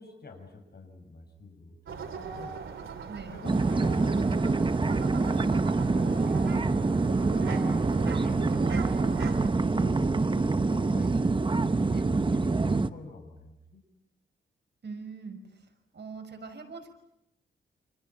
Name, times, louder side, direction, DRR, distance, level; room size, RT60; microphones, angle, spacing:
voice 1, 0.0-2.6 3.3-7.7 8.0-9.2 9.7-13.8, left 3 dB, 55° left, 5 dB, 6.8 m, -46 dB
sound 1, 1.9-9.5, right 6 dB, 85° right, 2.7 m, -40 dB
sound 2, 3.4-12.9, right 3 dB, 25° right, 0.9 m, -26 dB
voice 2, 14.8-15.4 15.9-16.9, right 5 dB, 60° right, 4 dB, 5.9 m, -41 dB
29.5 x 27.5 x 5.9 m, 0.81 s
wide cardioid pair, 90°, 20 cm